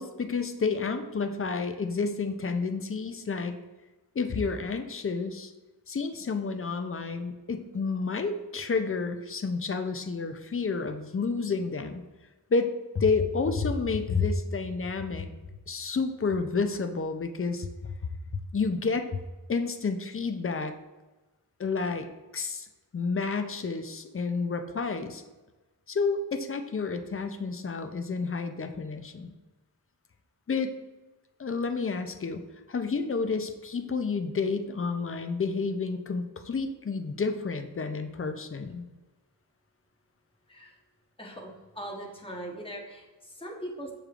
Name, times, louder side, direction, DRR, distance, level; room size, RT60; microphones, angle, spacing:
voice 1, 0.0-3.5 4.2-5.5 5.9-12.0 12.5-15.3 15.7-17.9 18.5-19.2 19.5-20.7 21.6-22.1 22.3-22.7 22.9-25.2 25.9-29.3 30.5-30.7 31.4-32.4 32.7-38.9, left 4 dB, 35° left, 7 dB, 0.4 m, -30 dB
voice 2, 41.2-43.9, right 1 dB, 15° left, -1 dB, 0.9 m, -40 dB
6.5 x 3.2 x 2.4 m, 1.2 s
wide cardioid pair, 60°, 42 cm